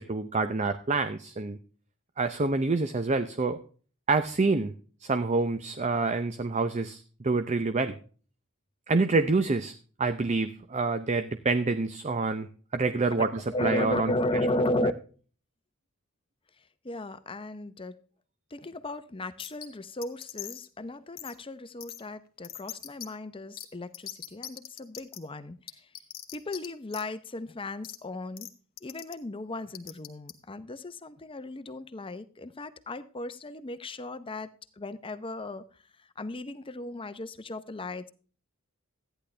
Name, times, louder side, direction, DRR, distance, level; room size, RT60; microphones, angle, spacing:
voice 1, 0.0-1.6 2.2-3.6 4.1-4.7 5.0-8.0 8.9-9.7 10.0-14.1, right 3 dB, 35° right, 0.6 m, -27 dB
voice 2, 13.5-14.9 16.8-18.0 18.5-25.9 26.3-28.5 28.8-34.5 34.8-35.7 36.0-38.1, left 1 dB, 25° left, 0.7 m, -35 dB
sound 1, 19.4-19.7 20.0-20.7 21.2-21.3 21.8-22.0 22.4-23.1 23.6-23.7 23.9-25.2 25.7-26.7 26.9-27.0 27.8-28.0 28.4-28.5 28.8-29.1 29.7-30.3, left 11 dB, 45° left, 1.6 m, -40 dB
14.0 x 10.0 x 3.3 m
head